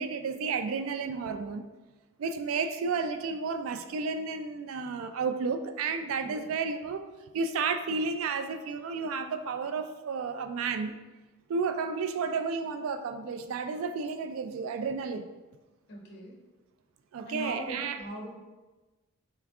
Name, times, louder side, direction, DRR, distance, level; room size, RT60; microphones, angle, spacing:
voice 1, 0.0-1.6 2.2-7.0 7.3-10.9 11.5-15.2 17.1-18.0, right 5 dB, 75° right, 8 dB, 0.3 m, -32 dB
voice 2, 6.2-6.5 15.9-16.3 17.2-18.3, right 1 dB, 50° left, -2 dB, 0.9 m, -40 dB
4.3 x 2.3 x 3.5 m, 1.2 s
head